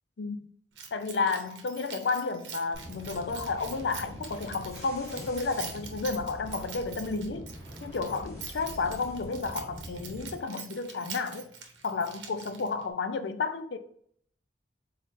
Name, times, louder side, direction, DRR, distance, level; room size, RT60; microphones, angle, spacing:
Keys jangling, 0.8-12.9, right 7 dB, 80° right, 0.8 m, -45 dB
voice 1, 0.9-7.5 7.8-11.5 11.8-13.8, left 4 dB, 70° left, 0.5 m, -32 dB
sound 1, 2.7-10.4, equal, 20° left, 1.2 m, -44 dB
3.9 x 3.6 x 2.6 m
head